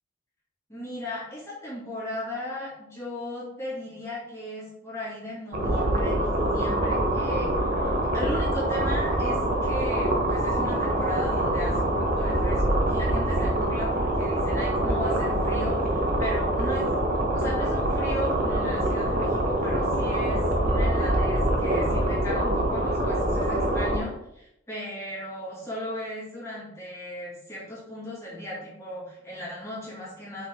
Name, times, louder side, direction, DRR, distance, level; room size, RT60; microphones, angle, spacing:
voice 1, 0.7-16.9 17.3-30.5, left 1 dB, 15° left, -8 dB, 2.5 m, -36 dB
sound 1, 5.5-24.0, right 1 dB, 45° right, 1.2 m, -25 dB
6.1 x 4.7 x 3.7 m, 0.80 s
head